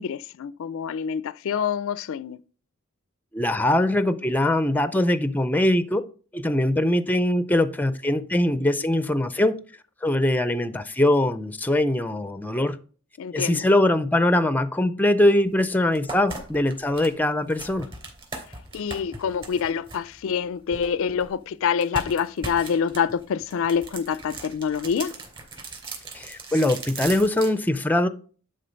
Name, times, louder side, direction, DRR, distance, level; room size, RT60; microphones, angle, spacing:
voice 1, 0.0-2.4 13.2-13.7 18.7-25.1, left 7 dB, 65° left, 0.4 m, -26 dB
voice 2, 3.3-6.1 6.3-9.6 10.0-12.8 13.3-17.9 26.1-28.1, left 1 dB, 10° left, 0.4 m, -22 dB
sound 1, 15.5-15.6 15.9-21.3 21.8-27.6, right 2 dB, 25° right, 3.1 m, -38 dB
11.0 x 3.8 x 5.2 m
head